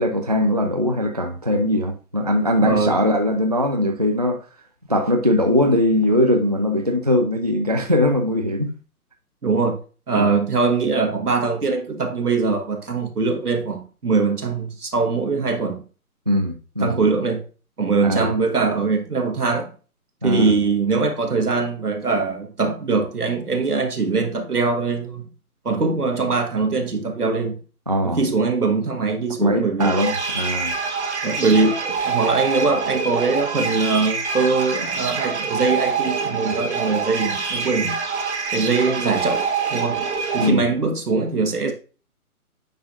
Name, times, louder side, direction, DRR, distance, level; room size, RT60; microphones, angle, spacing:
voice 1, 0.0-4.4 4.9-8.7 10.1-10.3 16.3-17.0 18.0-18.3 20.2-20.5 27.9-28.2 29.4-30.7 40.4-40.7, left 1 dB, 30° right, 0.3 m, -20 dB
voice 2, 2.6-2.9 9.4-9.8 10.1-15.9 16.8-17.4 17.8-19.7 20.2-25.3 25.6-27.6 28.0-30.1 31.2-38.0 38.5-40.0 40.3-41.7, right 4 dB, 80° right, 1.8 m, -22 dB
sound 1, 29.8-40.5, right 5 dB, 50° right, 1.4 m, -25 dB
9.4 x 4.2 x 2.6 m
figure-of-eight pair, 140°, 45 cm